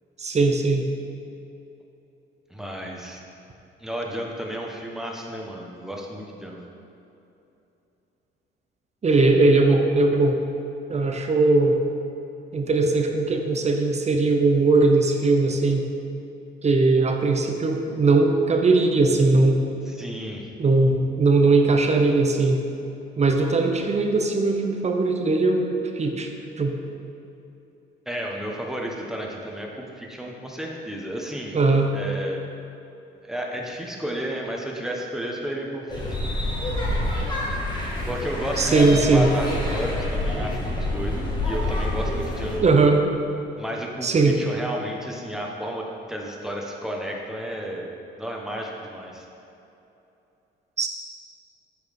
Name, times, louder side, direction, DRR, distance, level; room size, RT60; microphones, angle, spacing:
voice 1, 0.2-0.9 9.0-10.4 10.9-11.8 12.5-15.9 16.6-19.6 20.6-22.6 23.2-26.3 26.6-26.8 31.5-31.9 38.6-39.3 42.6-43.1 44.0-44.4 50.8-50.9, right 3 dB, 35° right, 4 dB, 0.8 m, -19 dB
voice 2, 2.5-3.2 3.8-6.6 19.9-20.5 28.1-31.6 31.9-32.4 33.2-36.1 38.1-42.7 43.6-47.9 48.2-49.3, equal, ahead, -1 dB, 1.2 m, -32 dB
sound 1, 35.9-42.6, left 1 dB, 20° left, 1.8 m, -27 dB
8.2 x 4.9 x 5.3 m, 2.9 s
cardioid pair, 90°, 20 cm